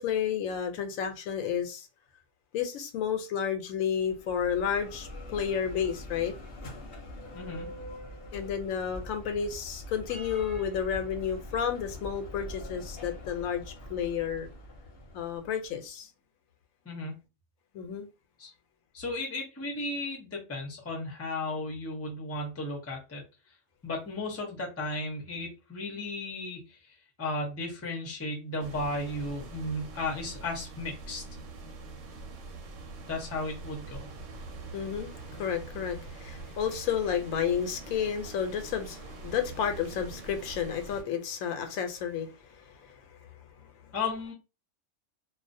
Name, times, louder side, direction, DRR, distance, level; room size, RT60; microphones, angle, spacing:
voice 1, 0.0-1.9 2.5-6.3 8.3-13.6 13.9-14.5 15.1-16.1 17.7-18.1 34.7-43.0 43.6-43.9, left 8 dB, 90° left, 1.0 m, -31 dB
Bell, 4.0-15.8, left 1 dB, 55° left, 0.8 m, -44 dB
voice 2, 7.3-7.7 16.9-17.1 18.4-18.5 18.9-23.2 23.8-26.8 27.2-31.2 33.1-34.1 43.9-44.3, left 2 dB, 20° left, 0.4 m, -35 dB
sound 1, 28.6-41.0, right 3 dB, 75° right, 0.9 m, -44 dB
2.4 x 2.0 x 2.5 m
omnidirectional pair, 1.4 m